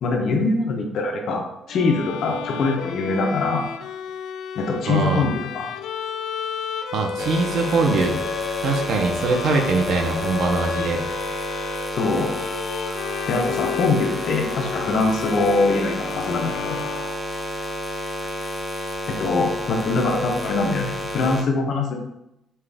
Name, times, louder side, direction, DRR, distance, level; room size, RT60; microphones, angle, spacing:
voice 1, 0.0-1.4 1.7-3.7 4.5-5.7 11.9-12.3 13.3-16.8 19.1-22.0, left 3 dB, 55° left, 2 dB, 0.8 m, -23 dB
Bowed string instrument, 1.7-17.7, left 8 dB, 75° left, 0.3 m, -32 dB
voice 2, 4.9-5.3 6.9-8.2 8.6-11.0, right 3 dB, 65° right, 4 dB, 0.7 m, -22 dB
sound 1, 7.2-21.4, equal, 5° left, 0.6 m, -30 dB
5.6 x 2.4 x 3.4 m, 0.85 s
cardioid pair, 150°, 0 cm